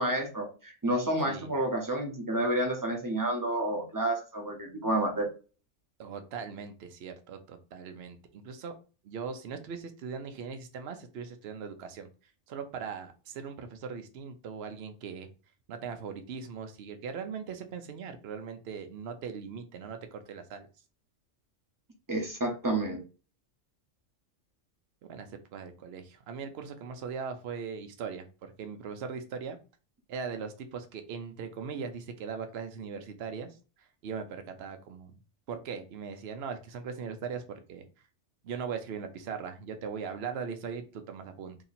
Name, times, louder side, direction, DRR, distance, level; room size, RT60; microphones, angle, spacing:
voice 1, 0.0-5.2 22.1-23.0, right 1 dB, 20° right, 2 dB, 0.7 m, -30 dB
voice 2, 6.0-8.7 9.0-12.1 12.5-15.3 15.7-20.7 25.0-28.2 28.6-29.6 30.1-33.6 34.0-35.1 35.5-37.4 37.7-37.8 38.4-41.6, right 6 dB, 60° right, 7 dB, 0.8 m, -39 dB
2.8 x 2.8 x 4.1 m, 0.34 s
omnidirectional pair, 1.3 m